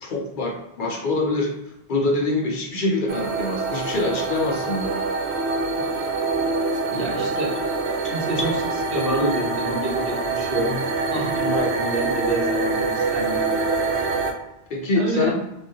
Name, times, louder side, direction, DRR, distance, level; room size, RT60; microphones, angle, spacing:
voice 1, 0.0-1.5 1.9-4.9 14.7-15.3, left 2 dB, 55° left, -1 dB, 0.7 m, -24 dB
sound 1, 3.1-14.3, right 3 dB, 90° right, 0.8 m, -25 dB
sound 2, 6.7-8.6, left 2 dB, 20° left, 0.8 m, -37 dB
voice 2, 6.9-7.5 8.1-10.8 11.1-13.5 14.9-15.3, right 1 dB, 65° right, -3 dB, 1.0 m, -27 dB
3.3 x 2.5 x 2.7 m, 0.86 s
omnidirectional pair, 1.1 m